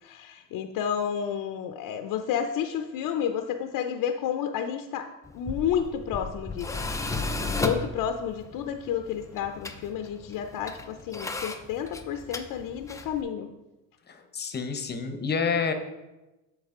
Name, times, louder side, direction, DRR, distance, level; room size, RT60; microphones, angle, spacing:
voice 1, 0.0-6.8 7.4-13.5, left 8 dB, 60° left, 6 dB, 0.6 m, -31 dB
Tools, 5.2-13.2, left 3 dB, 10° left, 0.3 m, -35 dB
voice 2, 14.1-15.7, left 5 dB, 25° left, 7 dB, 0.8 m, -28 dB
8.0 x 6.2 x 3.7 m, 1.1 s
cardioid pair, 125°, 40 cm